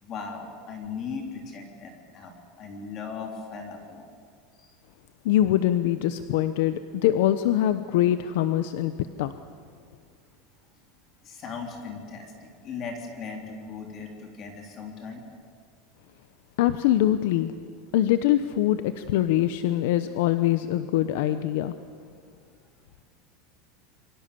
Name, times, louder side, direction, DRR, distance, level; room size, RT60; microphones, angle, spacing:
voice 1, 0.0-4.1 4.6-4.7 11.2-15.2, left 5 dB, 30° left, 3 dB, 3.6 m, -38 dB
voice 2, 5.2-8.9 9.2-9.3 16.6-17.5 17.9-21.7, left 12 dB, 65° left, 11 dB, 0.9 m, -23 dB
28.0 x 24.0 x 7.0 m, 2.2 s
supercardioid pair, 175°, 0 cm